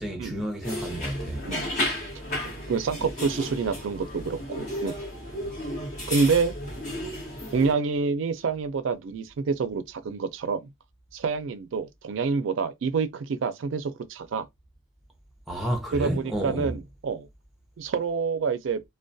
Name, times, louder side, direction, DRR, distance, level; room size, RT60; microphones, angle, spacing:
voice 1, 0.0-1.4 15.5-16.7, equal, ahead, 0.6 m, -30 dB
sound 1, 0.6-7.7, left 1 dB, 40° left, 1.0 m, -33 dB
voice 2, 2.4-5.0 6.1-6.6 7.5-10.7 11.1-14.4 15.9-17.3 17.8-18.8, right 5 dB, 75° right, 0.4 m, -27 dB
2.3 x 2.1 x 2.5 m
head